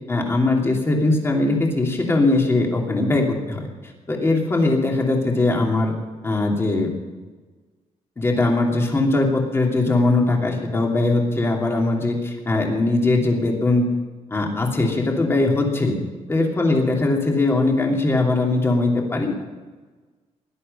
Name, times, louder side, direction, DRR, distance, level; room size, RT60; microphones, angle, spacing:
voice 1, 0.1-3.6 4.1-5.9 6.2-6.9 8.2-13.8 14.3-16.0 16.3-19.5, left 2 dB, 20° left, 0 dB, 2.8 m, -20 dB
17.5 x 12.0 x 5.5 m, 1.3 s
cardioid pair, 145°, 12 cm